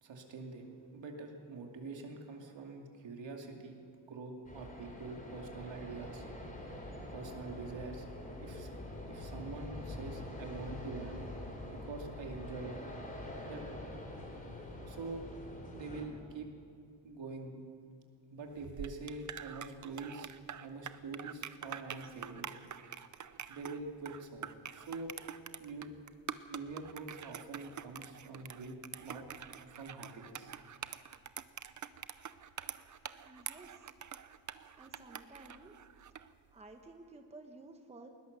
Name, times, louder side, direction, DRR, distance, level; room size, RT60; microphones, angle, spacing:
voice 1, 0.0-3.8 4.1-6.3 7.1-8.1 8.4-8.7 9.1-11.3 11.7-12.7 13.5-13.6 14.8-15.2 15.7-16.5 17.0-17.6 18.3-20.3 20.6-22.5 23.5-25.1 25.6-25.9 26.5-29.2 29.7-30.5, right 3 dB, 65° right, 2 dB, 2.6 m, -45 dB
sound 1, 4.4-16.1, left 1 dB, 15° left, 3.0 m, -45 dB
sound 2, 18.5-36.3, right 8 dB, 40° right, 0.6 m, -46 dB
voice 2, 33.2-33.9 34.8-35.7 36.2-38.1, right 2 dB, 15° right, 4 dB, 1.0 m, -54 dB
20.5 x 20.0 x 6.8 m, 2.4 s
wide cardioid pair, 175°, 48 cm